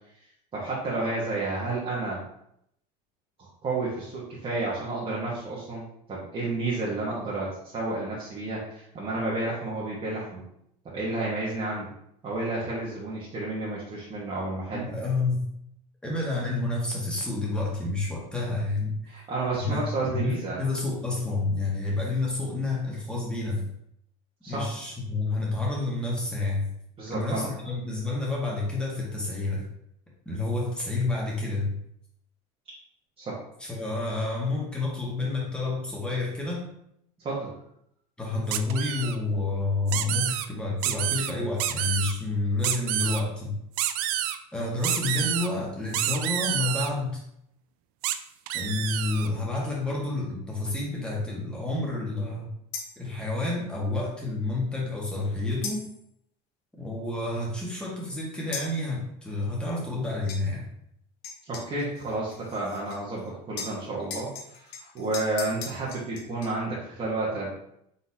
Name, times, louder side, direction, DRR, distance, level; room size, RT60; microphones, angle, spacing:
voice 1, 0.5-2.2 3.4-10.4 10.8-11.9 12.2-14.8 19.1-20.6 24.4-24.7 27.0-27.5 33.2-33.4 37.2-37.5 61.5-67.5, right 2 dB, 30° right, -7 dB, 1.3 m, -31 dB
voice 2, 14.7-15.4 16.0-19.0 19.6-23.7 24.5-26.7 27.1-29.7 30.2-31.7 33.6-36.6 38.2-43.5 44.5-47.2 48.5-52.5 53.0-55.8 56.8-60.6, left 2 dB, 5° left, -4 dB, 1.5 m, -29 dB
sound 1, 38.5-39.2 39.9-40.5 40.8-41.3 41.6-42.1 42.6-43.2 43.8-44.4 44.8-45.5 45.9-46.9 48.0-48.2 48.5-49.3, right 12 dB, 75° right, 0.4 m, -28 dB
sound 2, 52.7-53.1 55.6-56.0 58.5-58.8 60.3-60.4 61.2-63.3 63.6-66.5, left 5 dB, 80° left, 1.0 m, -39 dB
4.1 x 3.9 x 2.8 m, 0.75 s
supercardioid pair, 115°, 19 cm